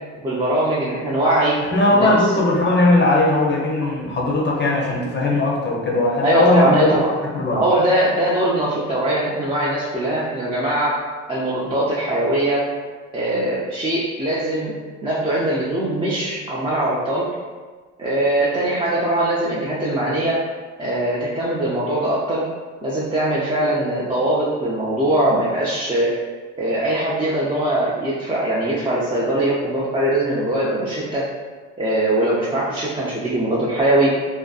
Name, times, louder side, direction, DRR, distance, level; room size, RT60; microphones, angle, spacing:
voice 1, 0.2-1.6 1.9-2.2 6.2-7.1 7.5-11.0 11.3-12.6 13.1-14.7 15.0-17.3 18.0-20.4 20.8-22.4 22.8-26.1 26.6-31.3 31.8-34.1, right 1 dB, 15° right, -7 dB, 0.4 m, -21 dB
voice 2, 1.7-6.9 7.3-7.6, left 2 dB, 35° left, -3 dB, 0.5 m, -18 dB
2.5 x 2.3 x 2.3 m, 1.4 s
cardioid pair, 90°, 30 cm